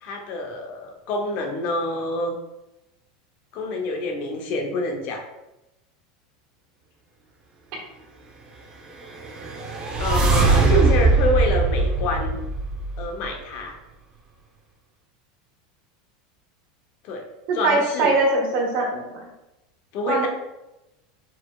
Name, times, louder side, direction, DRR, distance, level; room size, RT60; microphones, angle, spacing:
voice 1, 0.0-2.4 3.5-5.2 10.0-12.4 13.0-13.8 17.0-17.3 17.5-18.1 19.9-20.3, left 2 dB, 55° left, 3 dB, 0.8 m, -27 dB
sound 1, 9.1-13.2, right 3 dB, 25° right, 0.7 m, -21 dB
voice 2, 17.5-19.2 20.1-20.3, right 3 dB, 60° right, -1 dB, 1.5 m, -21 dB
4.3 x 4.3 x 2.3 m, 0.95 s
supercardioid pair, 125°, 3 cm